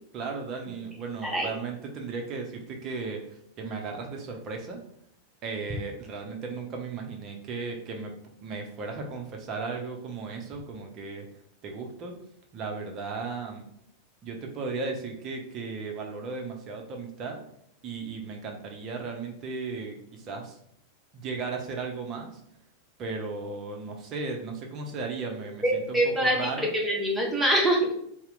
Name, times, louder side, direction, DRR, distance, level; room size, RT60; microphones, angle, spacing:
voice 1, 0.1-4.8 5.4-8.1 8.4-11.3 11.6-12.2 12.5-13.6 14.2-17.4 17.8-20.6 21.1-22.4 23.0-26.7, right 4 dB, 35° right, 2 dB, 0.6 m, -35 dB
voice 2, 25.6-27.9, right 1 dB, 5° right, -2 dB, 0.8 m, -25 dB
2.8 x 2.0 x 3.7 m, 0.71 s
figure-of-eight pair, 90°, 0 cm